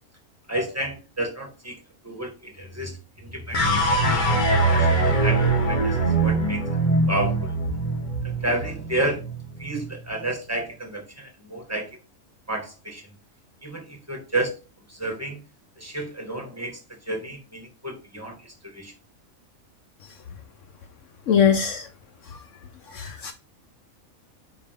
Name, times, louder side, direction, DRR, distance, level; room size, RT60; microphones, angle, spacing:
voice 1, 0.5-1.7 2.0-4.2 4.7-6.0 6.2-6.6 7.1-7.5 8.2-9.2 9.6-11.9 12.5-13.0 13.6-14.6 14.9-15.4 15.8-16.8 17.1-18.9, right 1 dB, 10° right, 1.9 m, -31 dB
sound 1, 3.5-9.9, right 2 dB, 35° left, 1.2 m, -22 dB
voice 2, 21.3-21.9 22.9-23.3, left 8 dB, 65° left, 1.0 m, -21 dB
6.5 x 5.4 x 3.7 m
omnidirectional pair, 1.4 m